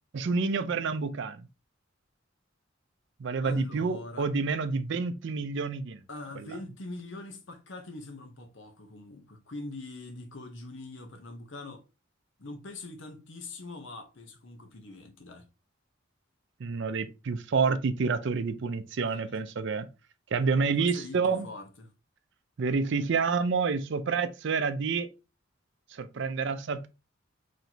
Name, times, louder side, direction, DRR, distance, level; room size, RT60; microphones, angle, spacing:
voice 1, 0.1-1.5 3.2-6.0 6.4-6.5 16.6-19.9 20.3-21.5 22.6-25.1 25.9-26.9, right 4 dB, 60° right, 0.4 m, -28 dB
voice 2, 3.4-4.3 6.1-11.8 12.4-15.4 19.1-19.2 20.8-21.9, left 2 dB, 65° left, 0.9 m, -43 dB
4.1 x 3.2 x 2.9 m
head